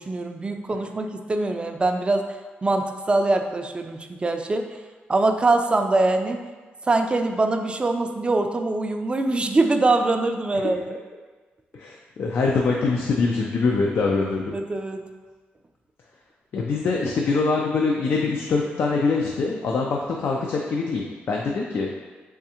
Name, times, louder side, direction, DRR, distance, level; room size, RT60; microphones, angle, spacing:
voice 1, 0.0-2.3 2.6-4.7 5.1-6.5 6.9-11.0 14.5-15.0, right 2 dB, 25° right, 6 dB, 0.3 m, -23 dB
voice 2, 11.7-14.5 16.5-21.9, left 4 dB, 65° left, 0 dB, 0.4 m, -24 dB
3.5 x 3.2 x 2.8 m, 1.3 s
cardioid pair, 70°, 4 cm